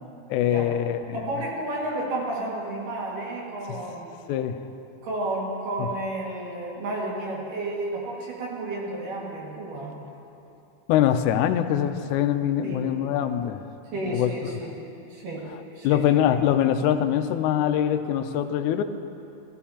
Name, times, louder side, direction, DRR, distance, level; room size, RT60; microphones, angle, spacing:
voice 1, 0.3-1.3 4.3-4.6 10.9-13.6 14.1-14.5 15.5-18.8, left 10 dB, 80° left, 8 dB, 1.9 m, -23 dB
voice 2, 1.1-4.1 5.0-9.9 12.6-12.8 13.9-14.8 15.1-15.5 15.8-16.4, right 2 dB, 85° right, -4 dB, 3.6 m, -32 dB
15.5 x 15.0 x 2.9 m, 2.8 s
omnidirectional pair, 3.7 m